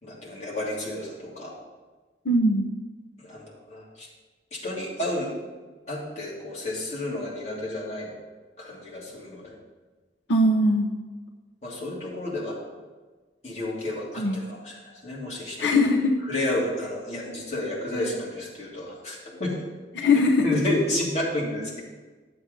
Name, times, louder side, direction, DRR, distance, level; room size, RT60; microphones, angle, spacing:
voice 1, 0.0-1.5 3.2-4.1 4.5-5.3 5.9-8.1 8.6-9.6 11.6-12.6 13.4-15.8 16.3-19.5 20.4-21.8, left 1 dB, 40° left, -5 dB, 2.7 m, -31 dB
voice 2, 2.2-2.7 10.3-10.9 14.2-14.4 15.6-16.1 19.9-20.6, left 1 dB, 85° left, 1 dB, 0.8 m, -21 dB
11.0 x 7.0 x 5.2 m, 1.3 s
head